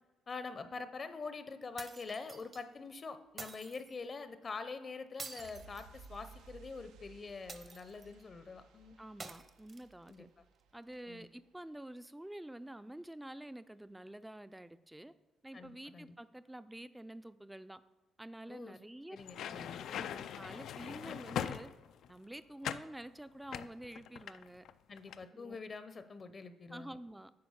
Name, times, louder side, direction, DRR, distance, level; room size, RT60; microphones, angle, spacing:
voice 1, 0.3-9.0 10.1-10.3 11.1-11.3 15.5-16.1 18.5-18.8 19.1-19.8 24.9-27.0, left 4 dB, 40° left, 11 dB, 0.7 m, -45 dB
sound 1, 1.8-2.6 3.4-4.0 5.2-6.4 7.5-8.1 9.2-10.1, right 3 dB, 35° right, 0.8 m, -49 dB
sound 2, 5.4-11.9 12.2-12.3, right 5 dB, 90° right, 0.6 m, -59 dB
voice 2, 9.0-10.3 10.7-15.1 15.4-17.8 18.2-19.2 19.4-21.7 22.1-24.6 25.3-25.6 26.7-27.3, right 1 dB, 10° right, 13 dB, 0.4 m, -48 dB
sound 3, 19.2-22.1 22.6-22.9 23.5-24.7 25.0-25.2, left 9 dB, 75° left, 0.3 m, -41 dB
9.5 x 4.4 x 6.3 m, 1.1 s
cardioid pair, 90°, 0 cm